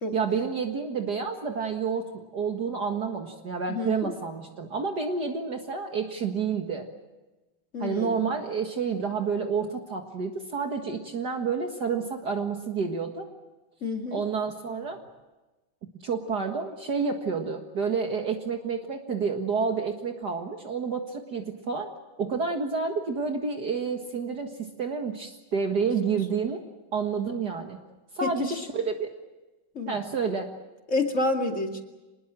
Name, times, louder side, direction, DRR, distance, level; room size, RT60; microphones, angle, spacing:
voice 1, 0.1-6.9 7.8-13.3 14.1-15.0 16.0-21.9 22.2-26.6 26.9-27.8 28.2-29.1 29.9-30.5, right 5 dB, 55° right, 4 dB, 2.2 m, -29 dB
voice 2, 3.7-4.1 7.7-8.3 13.8-14.2 28.2-28.6 29.7-30.0 30.9-31.8, left 2 dB, 35° left, 4 dB, 2.7 m, -29 dB
26.0 x 21.0 x 7.5 m, 1.1 s
omnidirectional pair, 2.2 m